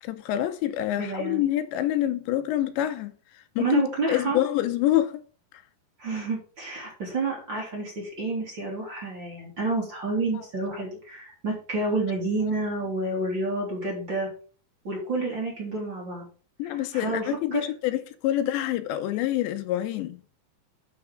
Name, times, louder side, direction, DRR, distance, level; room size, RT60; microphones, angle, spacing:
voice 1, 0.0-3.8 4.1-5.2 10.3-10.4 16.6-20.2, left 13 dB, 85° left, 3.0 m, -26 dB
voice 2, 1.0-1.4 3.6-4.4 6.0-14.3 14.8-16.3 16.6-17.6, right 3 dB, 30° right, 3.1 m, -29 dB
10.5 x 5.9 x 4.9 m
omnidirectional pair, 5.1 m